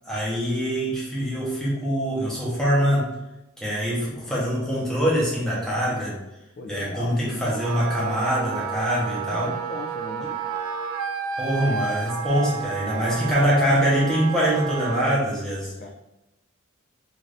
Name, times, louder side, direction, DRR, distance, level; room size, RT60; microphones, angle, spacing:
voice 1, 0.0-3.2 3.6-6.2 6.7-9.5 11.4-15.7, equal, ahead, -7 dB, 0.8 m, -24 dB
voice 2, 6.6-7.4 9.2-10.4 15.8-15.9, left 2 dB, 40° left, 3 dB, 0.3 m, -37 dB
Wind instrument woodwind instrument, 7.5-15.2, right 6 dB, 75° right, 0.3 m, -31 dB
2.6 x 2.5 x 3.3 m, 0.94 s
head